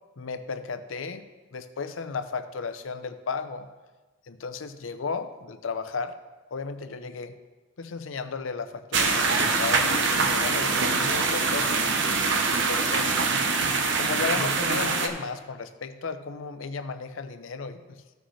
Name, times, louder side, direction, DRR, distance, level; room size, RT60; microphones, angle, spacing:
voice 1, 0.2-3.7 4.3-6.2 6.5-7.3 7.8-11.9 12.5-13.2 14.0-18.0, left 4 dB, 80° left, 10 dB, 0.6 m, -34 dB
sound 1, 8.9-15.1, right 4 dB, 65° right, 0.8 m, -24 dB
14.5 x 6.3 x 3.1 m, 1.3 s
head